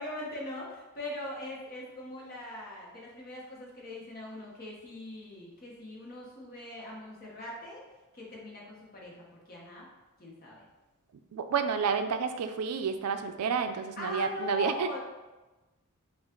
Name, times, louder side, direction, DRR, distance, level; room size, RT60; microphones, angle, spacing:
voice 1, 0.0-7.8 8.1-9.9 10.2-10.6 14.0-15.0, left 2 dB, 40° left, -3 dB, 1.2 m, -41 dB
voice 2, 11.3-14.9, right 6 dB, 75° right, 8 dB, 0.4 m, -30 dB
5.0 x 2.4 x 3.8 m, 1.1 s
head